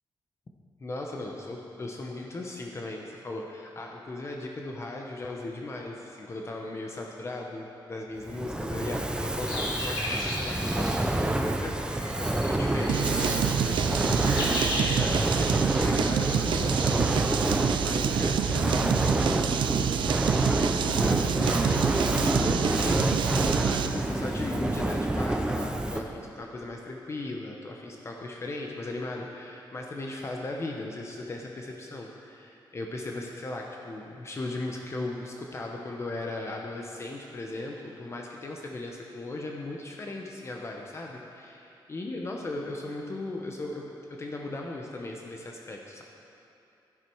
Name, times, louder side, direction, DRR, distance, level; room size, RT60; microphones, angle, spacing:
voice 1, 0.8-19.4 20.3-23.2 23.7-46.0, left 2 dB, 35° left, 0 dB, 0.9 m, -37 dB
Fire, 8.2-26.2, right 1 dB, 10° right, 0.6 m, -28 dB
sound 1, 9.4-16.9, left 1 dB, 65° left, 2.4 m, -36 dB
sound 2, 12.9-24.1, right 9 dB, 75° right, 0.4 m, -28 dB
12.0 x 11.0 x 4.6 m, 2.7 s
wide cardioid pair, 130°, 8 cm